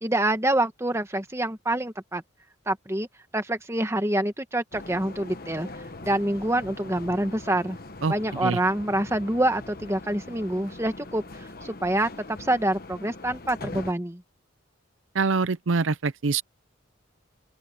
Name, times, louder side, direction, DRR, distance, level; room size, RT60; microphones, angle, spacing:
voice 1, 0.0-2.2 2.7-3.1 3.3-5.7 6.0-7.8 8.1-14.2, right 1 dB, 15° right, 1.5 m, -26 dB
sound 1, 4.7-13.9, left 2 dB, 45° left, 1.2 m, -41 dB
voice 2, 15.1-16.4, right 4 dB, 75° right, 0.6 m, -24 dB
open air
head